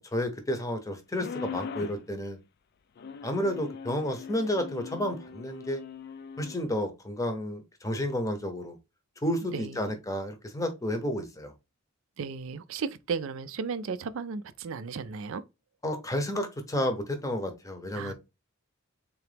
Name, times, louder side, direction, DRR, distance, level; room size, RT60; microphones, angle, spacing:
voice 1, 0.0-2.4 3.2-5.8 6.4-8.8 9.2-11.5 15.8-18.1, left 1 dB, 15° left, 0.7 m, -31 dB
sound 1, 1.1-2.0 3.0-6.6, left 6 dB, 50° left, 0.3 m, -41 dB
voice 2, 9.4-10.0 12.2-15.4 17.9-18.1, right 5 dB, 65° right, 0.4 m, -35 dB
3.8 x 2.9 x 3.3 m
head